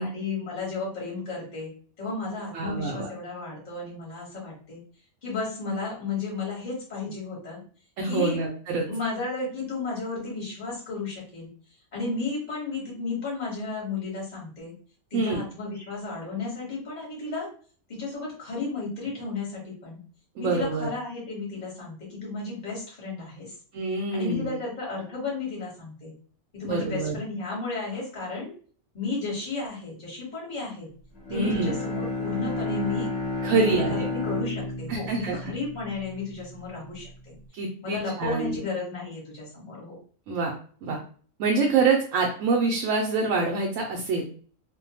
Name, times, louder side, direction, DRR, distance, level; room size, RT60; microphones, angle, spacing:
voice 1, 0.0-1.7 2.0-4.8 5.2-7.6 8.0-8.4 8.8-11.5 11.9-14.7 15.1-17.5 17.9-20.0 20.4-23.5 24.1-26.1 26.5-28.5 28.9-30.9 31.3-33.1 33.6-37.4 37.8-40.0, left 3 dB, 35° left, -4 dB, 1.2 m, -33 dB
voice 2, 2.5-3.1 8.0-8.8 15.1-15.4 20.4-20.9 23.7-24.6 26.6-27.2 31.3-31.7 33.4-34.1 34.9-35.4 37.5-38.6 40.3-40.5 40.8-41.0 41.4-44.2, right 4 dB, 70° right, 0 dB, 0.9 m, -26 dB
Bowed string instrument, 31.2-36.5, left 2 dB, 60° left, 1.1 m, -31 dB
2.6 x 2.1 x 2.8 m, 0.43 s
omnidirectional pair, 1.5 m